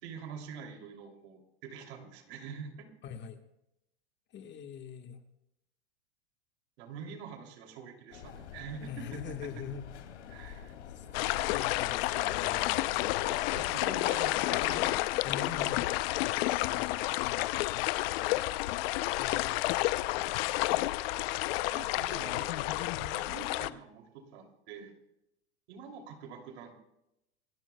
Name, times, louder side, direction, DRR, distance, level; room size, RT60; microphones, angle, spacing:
voice 1, 0.0-2.9 6.8-8.9 10.3-10.8 13.3-15.0 21.7-24.9 25.7-26.7, right 6 dB, 70° right, 2 dB, 3.1 m, -46 dB
voice 2, 3.0-3.4 4.3-5.2 8.8-9.9 10.3-10.6 10.9-13.1 15.2-15.9 16.6-17.2 19.2-20.8, left 6 dB, 30° left, 6 dB, 1.5 m, -44 dB
sound 1, 8.1-13.9, left 8 dB, 85° left, 2.6 m, -47 dB
sound 2, 11.1-23.7, left 18 dB, 60° left, 0.7 m, -30 dB
28.0 x 17.0 x 2.3 m, 0.85 s
supercardioid pair, 120°, 34 cm